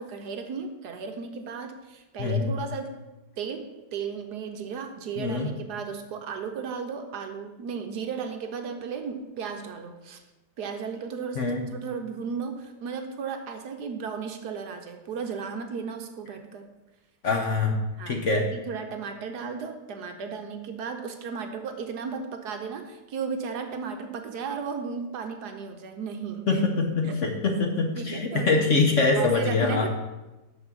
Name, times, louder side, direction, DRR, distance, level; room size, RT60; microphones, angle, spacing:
voice 1, 0.0-2.9 3.4-10.2 10.6-16.6 18.0-18.2 18.5-26.6 27.0-27.1 27.9-28.6 29.2-29.9, right 6 dB, 65° right, 6 dB, 1.3 m, -35 dB
voice 2, 2.2-2.5 5.2-5.5 11.4-11.6 17.2-18.5 26.5-29.9, left 3 dB, 50° left, 2 dB, 1.0 m, -24 dB
6.1 x 6.1 x 7.2 m, 1.1 s
omnidirectional pair, 2.0 m